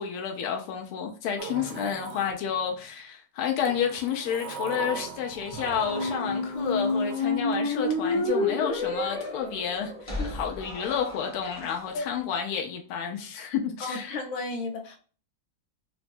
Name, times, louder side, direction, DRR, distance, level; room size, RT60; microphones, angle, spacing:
voice 1, 0.0-14.2, left 8 dB, 90° left, 1.5 m, -30 dB
Sliding door, 1.4-2.9 3.6-8.3, right 5 dB, 75° right, 1.4 m, -40 dB
Squeak, 5.8-11.7, left 2 dB, 25° left, 0.7 m, -29 dB
voice 2, 13.8-15.0, left 3 dB, 70° left, 1.6 m, -33 dB
3.9 x 2.2 x 2.5 m
omnidirectional pair, 2.3 m